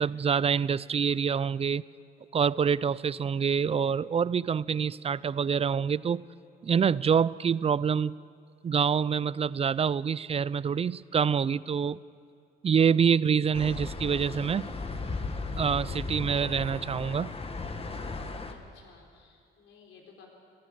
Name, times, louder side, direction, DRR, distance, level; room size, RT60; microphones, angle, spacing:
voice 1, 0.0-1.8 2.3-6.2 6.6-8.1 8.6-12.0 12.6-14.7 15.6-17.3, right 7 dB, 30° right, 20 dB, 0.4 m, -26 dB
sound 1, 13.5-18.5, left 3 dB, 30° left, 1.6 m, -36 dB
voice 2, 18.5-20.3, left 5 dB, 75° left, 1 dB, 4.2 m, -55 dB
18.5 x 15.0 x 9.7 m, 2.3 s
cardioid pair, 90°, 20 cm